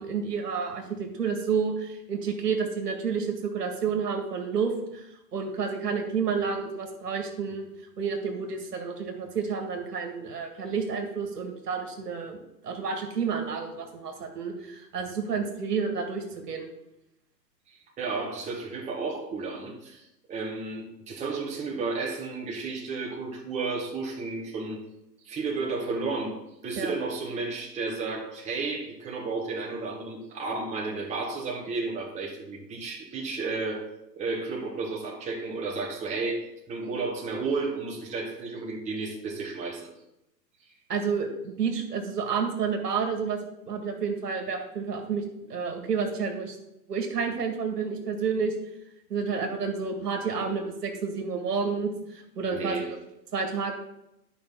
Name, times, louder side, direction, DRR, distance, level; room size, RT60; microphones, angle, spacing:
voice 1, 0.0-7.7 8.0-12.4 12.6-16.7 26.8-26.9 40.9-43.4 43.6-46.6 46.9-48.5 49.1-52.9 53.3-53.7, right 5 dB, 65° right, 4 dB, 1.8 m, -30 dB
voice 2, 17.7-24.8 25.2-26.4 26.6-33.9 34.2-39.9 52.5-52.9, right 3 dB, 15° right, -2 dB, 1.3 m, -32 dB
11.0 x 5.5 x 4.5 m, 0.87 s
figure-of-eight pair, 110°, 50 cm